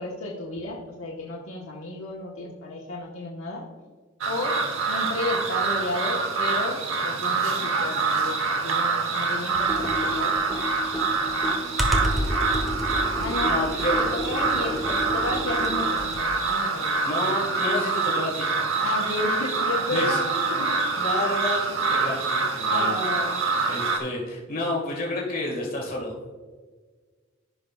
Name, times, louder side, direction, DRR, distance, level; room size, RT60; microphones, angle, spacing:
voice 1, 0.0-3.7 4.3-10.4 13.2-13.6 14.0-17.0 18.8-21.0 22.6-23.4, left 2 dB, 85° left, -3 dB, 1.3 m, -32 dB
sound 1, 4.2-24.0, right 4 dB, 70° right, 1.0 m, -26 dB
Computer keyboard, 9.5-16.4, equal, ahead, 1.1 m, -30 dB
voice 2, 13.5-14.0 14.5-14.7 17.1-18.5 19.9-20.2 21.0-23.0 23.6-26.2, left 2 dB, 45° left, -2 dB, 1.8 m, -30 dB
15.5 x 5.6 x 2.4 m, 1.4 s
head